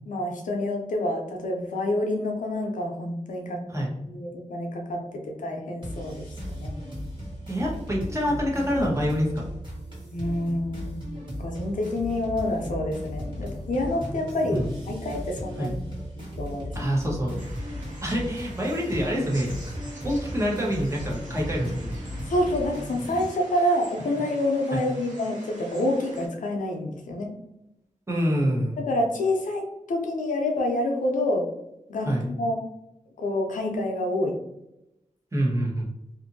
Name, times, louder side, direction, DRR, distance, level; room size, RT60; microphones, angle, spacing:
voice 1, 0.1-3.6 4.1-6.3 6.5-6.7 10.1-15.8 16.4-16.7 18.1-18.2 22.3-27.3 28.8-31.5 31.9-32.6 33.2-34.4, left 1 dB, 90° left, 1 dB, 0.6 m, -27 dB
sound 1, 5.8-23.3, equal, 40° right, 1.4 m, -36 dB
voice 2, 7.5-9.4 14.4-14.7 15.6-15.7 16.7-17.4 18.0-19.8 20.0-21.9 24.7-24.8 28.1-28.8 32.0-32.2 35.3-35.9, equal, 20° right, -3 dB, 0.9 m, -26 dB
sound 2, 17.4-26.3, right 1 dB, 85° right, 1.0 m, -47 dB
2.6 x 2.5 x 2.6 m, 0.88 s
wide cardioid pair, 80°, 13 cm